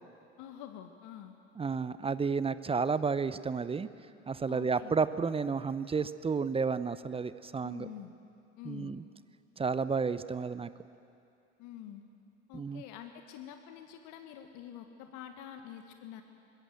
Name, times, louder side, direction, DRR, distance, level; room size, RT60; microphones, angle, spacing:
voice 1, 0.4-1.3 4.5-5.0 7.6-8.1 8.6-8.9 11.6-12.0 12.5-16.2, left 10 dB, 55° left, 6 dB, 1.6 m, -47 dB
voice 2, 1.6-3.9 4.3-7.9 8.6-9.0 9.6-10.7 12.5-12.8, right 5 dB, 15° right, 15 dB, 0.7 m, -31 dB
25.0 x 21.0 x 7.8 m, 2.6 s
figure-of-eight pair, 70°, 36 cm